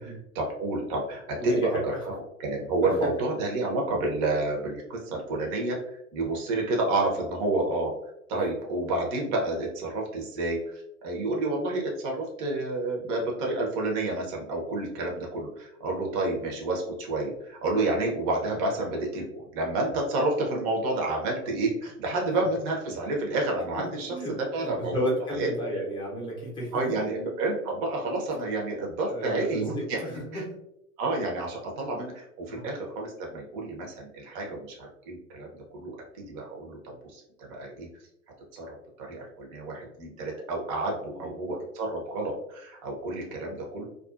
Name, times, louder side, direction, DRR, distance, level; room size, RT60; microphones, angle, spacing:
voice 1, 0.0-7.9 8.3-25.0 25.3-25.5 26.7-30.0 30.3-30.4 31.0-37.9 38.5-43.9, right 2 dB, 35° right, -1 dB, 0.8 m, -30 dB
voice 2, 1.4-2.0 2.8-3.1 24.1-27.1 29.1-30.5 32.4-32.7 34.5-34.6 41.1-41.3, equal, 10° left, -5 dB, 0.7 m, -33 dB
2.4 x 2.3 x 2.4 m, 0.79 s
hypercardioid pair, 115°, 44 cm